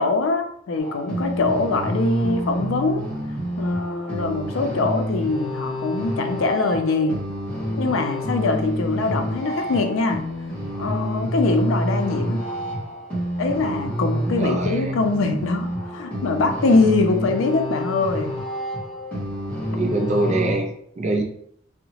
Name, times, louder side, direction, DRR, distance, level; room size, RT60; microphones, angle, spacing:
voice 1, 0.0-3.1 3.6-7.2 7.8-10.2 10.8-12.4 13.4-18.3, left 3 dB, 80° left, 5 dB, 0.4 m, -23 dB
sound 1, 0.8-20.5, equal, 10° left, 1.2 m, -28 dB
voice 2, 14.4-14.9 19.7-20.7 21.0-21.2, right 2 dB, 35° right, 2 dB, 0.4 m, -23 dB
2.8 x 2.0 x 2.9 m, 0.68 s
head